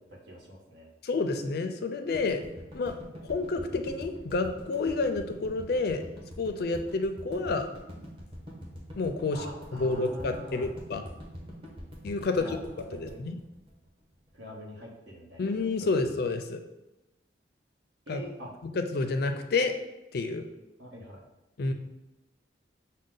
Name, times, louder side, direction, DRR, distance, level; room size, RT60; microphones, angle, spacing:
voice 1, 0.0-0.9 9.3-10.7 12.4-12.6 12.9-13.2 14.3-15.9 18.1-18.5 20.8-21.2, equal, 80° right, -2 dB, 1.1 m, -44 dB
voice 2, 1.0-2.4 2.7-2.9 3.3-6.0 6.4-7.7 9.0-9.4 9.7-11.0 12.0-12.4 13.0-13.4 15.4-16.6 18.1-18.2 18.7-19.7 20.1-20.4 21.6-21.7, left 3 dB, 55° left, 6 dB, 0.4 m, -29 dB
sound 1, 2.1-14.3, equal, 30° right, 0.9 m, -44 dB
6.3 x 2.1 x 3.8 m, 0.97 s
head